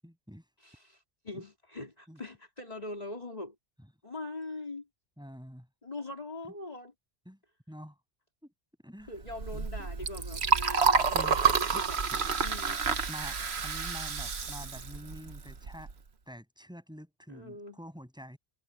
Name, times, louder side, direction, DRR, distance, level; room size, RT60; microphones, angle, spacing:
voice 1, 0.0-0.5 1.3-1.4 2.1-2.2 5.2-5.7 7.2-7.4 7.7-8.0 8.4-8.5 8.8-9.1 9.5-9.7 11.1-11.4 11.7-11.8 12.1-12.2 13.1-15.9 16.3-18.4, equal, 5° right, 8.0 m, -47 dB
voice 2, 0.6-3.6 4.0-4.9 5.8-6.9 9.1-12.0 12.4-12.8 17.3-17.8, left 2 dB, 40° left, 3.5 m, -42 dB
Liquid, 9.2-15.9, right 5 dB, 85° right, 1.6 m, -29 dB
omnidirectional pair, 1.1 m